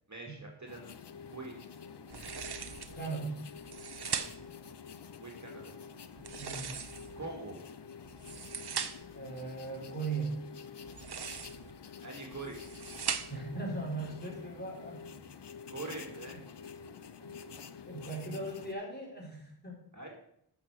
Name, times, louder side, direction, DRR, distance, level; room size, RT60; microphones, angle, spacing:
voice 1, 0.1-0.9 1.3-1.5 5.2-5.7 7.2-7.6 12.0-12.6 15.7-16.4 19.9-20.1, right 3 dB, 45° right, 0 dB, 2.4 m, -43 dB
sound 1, 0.7-18.7, left 6 dB, 85° left, 0.7 m, -48 dB
sound 2, 2.1-3.0 3.6-4.6 6.2-7.2 8.0-9.2 10.8-11.7 12.3-13.5, right 7 dB, 70° right, 0.8 m, -39 dB
voice 2, 3.0-3.3 6.4-6.8 9.1-10.4 13.3-15.0 15.8-15.9 17.2-17.3 17.9-19.8, right 3 dB, 25° left, -4 dB, 5.0 m, -38 dB
8.6 x 6.4 x 6.7 m, 0.72 s
wide cardioid pair, 45°, 41 cm